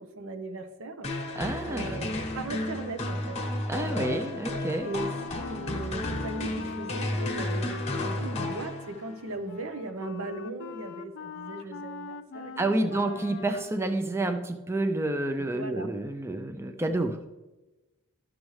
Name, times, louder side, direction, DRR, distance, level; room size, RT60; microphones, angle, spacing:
voice 1, 0.0-3.4 3.8-4.5 4.8-12.5 12.8-13.0 15.4-16.0, right 2 dB, 75° right, 7 dB, 0.8 m, -38 dB
sound 1, 1.0-9.2, left 1 dB, 30° left, 1.1 m, -32 dB
voice 2, 1.4-2.1 3.7-4.9 12.6-17.3, right 2 dB, 10° right, 6 dB, 0.4 m, -29 dB
Wind instrument woodwind instrument, 4.8-13.8, left 5 dB, 55° left, 0.4 m, -42 dB
12.5 x 6.2 x 3.2 m, 1.1 s
head